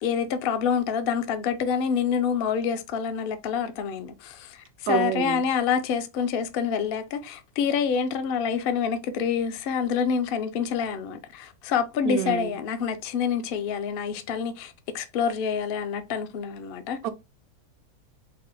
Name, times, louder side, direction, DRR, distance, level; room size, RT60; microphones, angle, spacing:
voice 1, 0.0-17.0, left 7 dB, 70° left, 0.5 m, -27 dB
voice 2, 4.9-5.4 12.0-12.6 17.0-17.1, right 10 dB, 80° right, 1.1 m, -27 dB
4.0 x 2.2 x 3.2 m
omnidirectional pair, 1.5 m